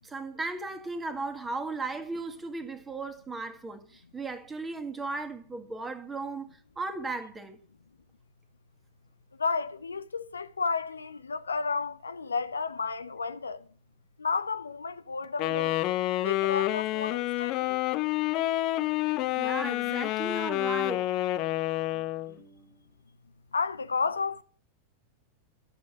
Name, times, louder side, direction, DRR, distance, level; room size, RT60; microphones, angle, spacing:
voice 1, 0.0-7.6 19.4-21.1 22.3-22.7, right 3 dB, 15° right, 1.8 m, -36 dB
voice 2, 9.4-13.6 14.2-15.8 16.2-17.8 23.5-24.4, left 4 dB, 75° left, 0.7 m, -32 dB
Wind instrument woodwind instrument, 15.4-22.3, left 16 dB, 40° left, 0.8 m, -28 dB
12.5 x 7.5 x 8.7 m
figure-of-eight pair, 90°, 0 cm